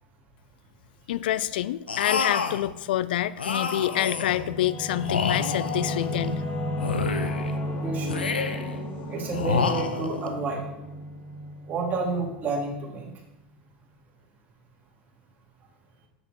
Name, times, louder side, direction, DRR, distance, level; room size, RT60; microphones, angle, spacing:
voice 1, 1.1-6.4, left 13 dB, 70° left, 16 dB, 0.4 m, -27 dB
sound 1, 1.9-2.7 3.4-4.5 5.0-6.4 6.8-7.6 8.1-8.8 9.3-10.3, left 5 dB, 90° left, 0.7 m, -29 dB
Singing / Musical instrument, 3.7-12.8, left 1 dB, 35° left, 2.3 m, -33 dB
voice 2, 7.8-8.2 9.1-10.7 11.7-13.1, right 3 dB, 35° right, -1 dB, 2.6 m, -29 dB
7.8 x 6.8 x 4.4 m, 0.92 s
hypercardioid pair, 95°, 5 cm